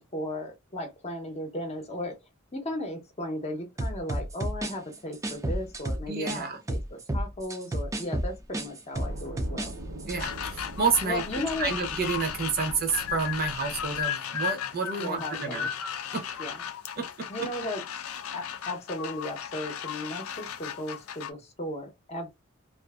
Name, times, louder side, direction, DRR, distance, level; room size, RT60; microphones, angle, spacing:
voice 1, 0.0-2.2 2.5-9.7 11.0-11.7 15.0-15.7 16.4-16.6 17.3-17.8 18.3-22.4, left 1 dB, 30° left, 0.7 m, -36 dB
sound 1, 3.8-6.4 6.7-9.7 10.0-10.2, right 1 dB, 15° right, 0.4 m, -31 dB
voice 2, 6.1-6.6 10.1-11.2 11.6-15.7 16.1-16.4 17.0-17.3, right 5 dB, 45° right, 0.7 m, -29 dB
sound 2, 8.9-14.0, right 1 dB, 85° right, 1.1 m, -42 dB
sound 3, 10.2-21.3, left 9 dB, 80° left, 0.4 m, -35 dB
2.5 x 2.5 x 2.3 m
head